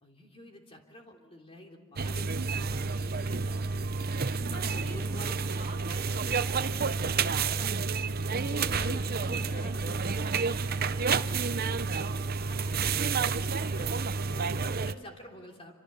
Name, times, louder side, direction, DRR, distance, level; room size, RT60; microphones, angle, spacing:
voice 1, 0.0-3.1 3.5-3.9 4.5-5.4 7.1-7.7 8.0-11.8 12.1-14.0 14.3-15.7, left 1 dB, 25° left, 2 dB, 3.3 m, -48 dB
sound 1, 2.0-14.9, right 4 dB, 45° right, 0.7 m, -30 dB
voice 2, 3.1-3.8 4.4-6.6, right 2 dB, 30° right, 4 dB, 1.3 m, -47 dB
27.5 x 26.5 x 6.9 m, 1.4 s
head